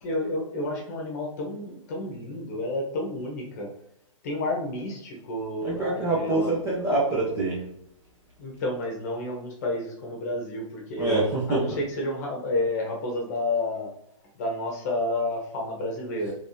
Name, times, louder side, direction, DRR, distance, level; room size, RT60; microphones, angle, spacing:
voice 1, 0.0-3.7 4.2-6.5 8.4-11.1 11.5-13.9 14.3-16.4, left 1 dB, 30° left, 0 dB, 1.0 m, -30 dB
voice 2, 5.6-7.6 11.0-11.7, right 2 dB, 15° right, -6 dB, 0.6 m, -25 dB
4.7 x 3.2 x 2.7 m, 0.76 s
hypercardioid pair, 160°, 17 cm